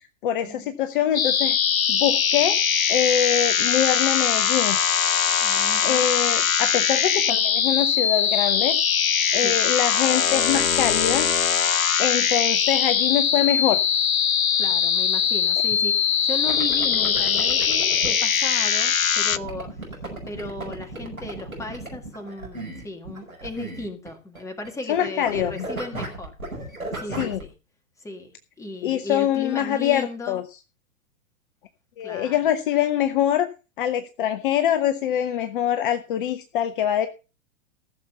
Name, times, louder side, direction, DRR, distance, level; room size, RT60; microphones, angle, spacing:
voice 1, 0.2-1.6 1.9-2.6 2.9-4.8 5.8-8.8 9.3-11.3 11.7-13.8 24.9-25.7 27.2-27.4 28.8-30.4 32.0-33.5 33.8-37.1, left 10 dB, 40° left, 9 dB, 0.8 m, -24 dB
sound 1, 1.1-19.4, left 7 dB, 80° left, 0.7 m, -21 dB
voice 2, 5.4-6.1 9.3-9.6 14.6-19.7 20.3-26.3 27.0-27.5 28.0-30.4 32.0-32.4, left 1 dB, 5° left, 4 dB, 2.0 m, -36 dB
sound 2, 16.5-18.1 19.3-25.0 25.2-27.4, right 2 dB, 85° right, 5.6 m, -35 dB
15.0 x 6.9 x 5.6 m, 0.33 s
figure-of-eight pair, 105°, 41 cm